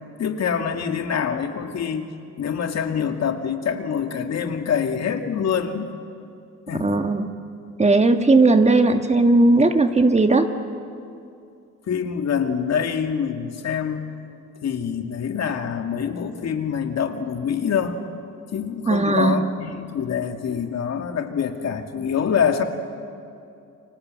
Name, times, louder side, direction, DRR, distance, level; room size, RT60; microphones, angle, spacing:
voice 1, 0.2-2.1 2.4-5.9 6.7-7.0 11.9-14.1 14.6-18.0 18.5-22.6, left 7 dB, 60° left, 5 dB, 2.4 m, -25 dB
voice 2, 6.8-7.3 7.8-10.5 18.9-19.4, right 2 dB, 20° right, 6 dB, 1.8 m, -17 dB
29.5 x 25.0 x 7.8 m, 2.5 s
cardioid pair, 90°, 30 cm